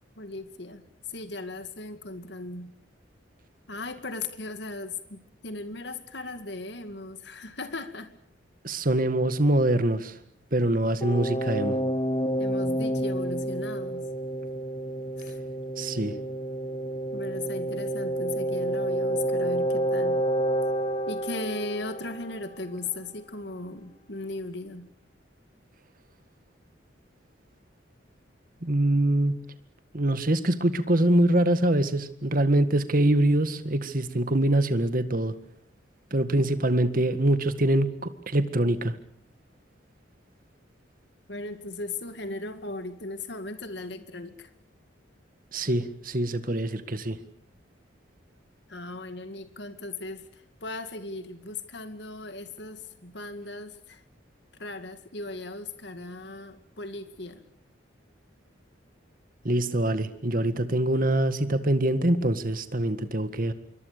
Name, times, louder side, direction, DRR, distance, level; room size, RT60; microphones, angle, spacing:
voice 1, 0.2-0.8 1.1-2.7 3.7-8.1 12.4-14.1 15.2-15.4 17.1-20.2 21.1-24.9 41.3-44.5 48.7-54.0 54.6-57.4, left 2 dB, 60° left, 9 dB, 2.3 m, -37 dB
voice 2, 8.6-10.2 10.5-11.8 15.8-16.1 28.6-29.4 29.9-35.3 36.1-39.0 45.5-47.2 59.4-63.5, right 1 dB, 45° right, 11 dB, 1.9 m, -24 dB
sound 1, 11.0-22.6, right 1 dB, 25° left, 1.6 m, -29 dB
26.5 x 23.5 x 6.8 m, 0.66 s
head